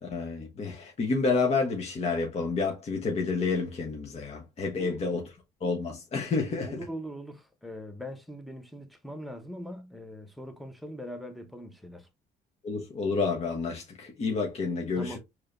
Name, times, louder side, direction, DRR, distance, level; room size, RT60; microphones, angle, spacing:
voice 1, 0.0-5.3 5.6-6.8 12.6-15.2, left 4 dB, 40° left, 1.1 m, -29 dB
voice 2, 6.6-12.1 15.0-15.2, equal, ahead, 0.9 m, -41 dB
4.7 x 2.9 x 2.5 m
cardioid pair, 110°, 17 cm